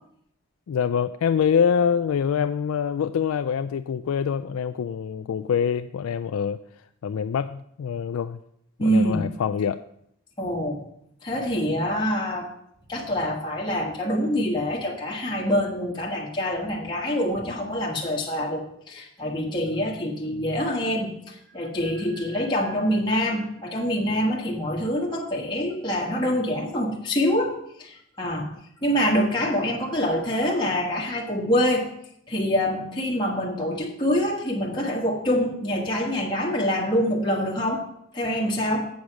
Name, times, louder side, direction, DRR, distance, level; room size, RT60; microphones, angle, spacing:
voice 1, 0.7-6.6 7.0-8.4 8.8-9.8, left 7 dB, 75° left, 10 dB, 0.3 m, -25 dB
voice 2, 8.8-9.3 10.4-10.8 11.2-12.5 12.9-28.5 28.8-31.9 32.3-37.8 38.1-38.9, equal, 20° left, -3 dB, 1.3 m, -25 dB
8.4 x 6.3 x 6.0 m, 0.73 s
head